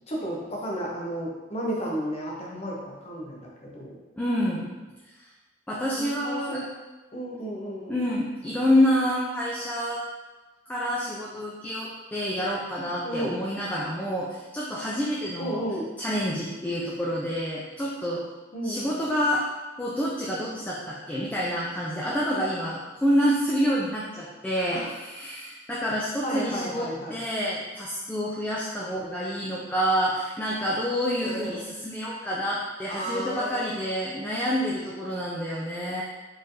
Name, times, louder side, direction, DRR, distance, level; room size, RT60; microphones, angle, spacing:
voice 1, 0.1-3.9 6.0-6.6 7.1-8.0 13.0-13.3 15.4-15.9 18.5-18.9 24.7-24.9 26.2-27.2 28.8-29.1 31.2-31.6 33.0-33.9, equal, 35° left, -3 dB, 0.7 m, -33 dB
voice 2, 4.2-4.7 5.7-6.6 7.9-10.0 10.7-15.6 16.0-18.2 18.6-19.4 19.8-36.0, equal, 10° left, -6 dB, 0.3 m, -28 dB
4.2 x 3.2 x 2.7 m, 1.2 s
head